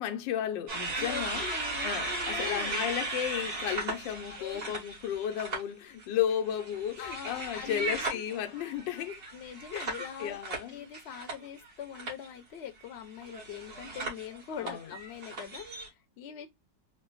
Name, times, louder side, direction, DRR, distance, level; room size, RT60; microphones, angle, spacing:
voice 1, 0.0-1.4 1.8-9.2 9.7-10.8 14.6-14.9, left 10 dB, 90° left, 1.3 m, -34 dB
sound 1, 0.7-5.6 6.0-11.7 11.9-12.3 13.2-15.9, right 2 dB, 60° right, 2.1 m, -37 dB
voice 2, 1.0-2.8 4.4-4.7 7.0-8.2 9.3-10.4 10.7-16.5, left 8 dB, 60° left, 0.7 m, -42 dB
4.2 x 2.0 x 3.8 m
omnidirectional pair, 1.9 m